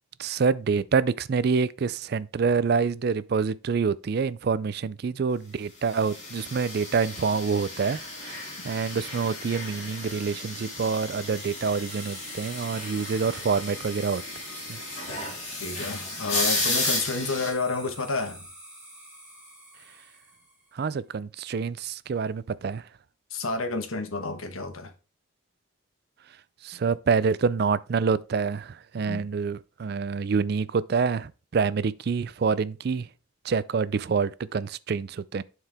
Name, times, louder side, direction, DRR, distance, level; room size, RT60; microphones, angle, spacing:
voice 1, 0.2-14.2 14.7-14.8 20.7-22.8 26.6-33.1 33.4-35.4, right 5 dB, 50° right, 0.4 m, -27 dB
sound 1, 5.9-17.5, left 2 dB, 35° left, 3.5 m, -33 dB
sound 2, 11.9-20.8, right 1 dB, 5° right, 3.3 m, -47 dB
voice 2, 15.6-18.5 23.3-24.9 29.1-29.2, left 3 dB, 90° left, 1.3 m, -30 dB
11.0 x 4.6 x 3.5 m
head